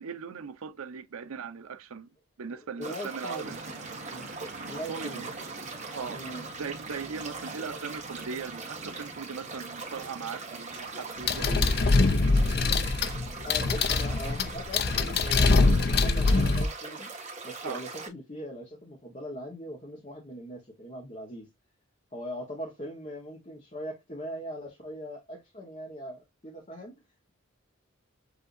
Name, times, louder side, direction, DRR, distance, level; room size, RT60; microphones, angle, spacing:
voice 1, 0.0-2.1 2.4-3.6 4.9-5.3 5.9-6.2 6.6-11.7 17.6-17.8, right 5 dB, 85° right, 0.6 m, -38 dB
voice 2, 2.8-3.6 4.1-4.3 4.6-5.3 6.1-6.5 13.4-17.1 17.4-21.5 22.1-26.9, equal, 30° left, 1.1 m, -40 dB
sound 1, 2.8-18.1, right 3 dB, 35° right, 1.4 m, -41 dB
sound 2, 3.4-12.0, right 2 dB, 55° right, 0.9 m, -47 dB
sound 3, 11.3-16.7, left 3 dB, 50° left, 0.5 m, -23 dB
7.9 x 2.7 x 2.5 m
head